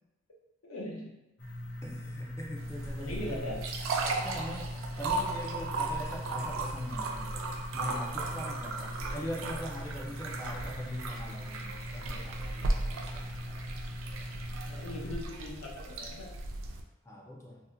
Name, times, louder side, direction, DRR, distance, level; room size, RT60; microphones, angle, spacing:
voice 1, 0.6-1.2 2.0-2.1 3.0-3.6 14.7-16.3, left 1 dB, 85° left, -2 dB, 0.7 m, -40 dB
sound 1, 1.4-15.2, left 1 dB, 55° left, 1.2 m, -41 dB
voice 2, 1.8-3.6 4.2-7.5 7.7-13.6 17.0-17.6, equal, 15° left, -2 dB, 0.4 m, -42 dB
sound 2, 2.6-16.8, right 2 dB, 70° right, 0.4 m, -36 dB
2.7 x 2.1 x 3.6 m, 0.99 s
head